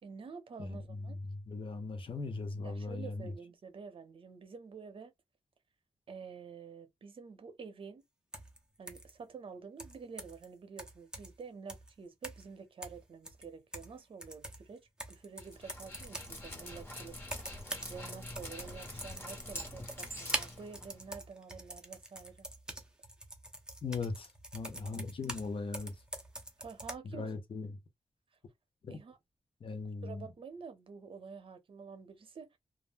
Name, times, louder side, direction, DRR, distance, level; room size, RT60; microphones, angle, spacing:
voice 1, 0.0-1.2 2.6-5.1 6.1-8.0 8.8-22.5 26.6-27.3 28.9-29.2 30.0-32.6, right 5 dB, 60° right, 0.7 m, -49 dB
voice 2, 0.6-1.0 1.3-3.3 23.8-25.9 27.0-27.8 28.8-29.0 29.6-30.3, left 3 dB, 60° left, 0.7 m, -39 dB
sound 1, 8.3-8.6 8.9-9.1 9.8-10.4 10.8-11.4 11.7-11.9 12.2-12.5 12.8-14.0 14.2-16.4 17.2-18.0 18.2-25.5 25.7-27.0, right 1 dB, 10° right, 0.6 m, -44 dB
Dog, 15.4-21.2, left 1 dB, 20° left, 1.2 m, -45 dB
2.4 x 2.1 x 3.2 m
wide cardioid pair, 95°, 10 cm